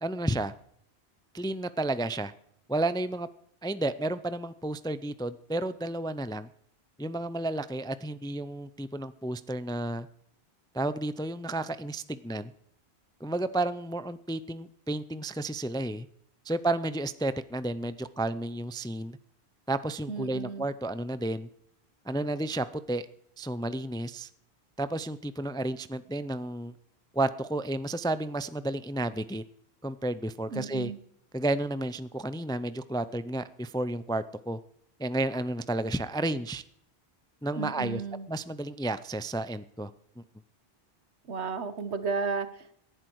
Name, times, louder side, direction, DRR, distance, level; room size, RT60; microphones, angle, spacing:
voice 1, 0.0-0.5 1.3-2.3 2.7-3.3 3.6-6.5 7.0-10.1 10.7-12.5 13.2-16.1 16.4-19.2 19.7-21.5 22.1-23.1 23.4-24.3 24.8-26.7 27.1-29.4 29.8-30.9 31.3-34.6 35.0-36.6 37.4-38.0 38.3-39.9 40.2-40.3, right 2 dB, 5° left, 14 dB, 0.3 m, -32 dB
voice 2, 20.1-20.7 30.5-31.0 37.6-38.3 41.3-42.7, right 4 dB, 85° right, 11 dB, 1.5 m, -33 dB
18.5 x 11.0 x 4.7 m, 0.69 s
omnidirectional pair, 1.1 m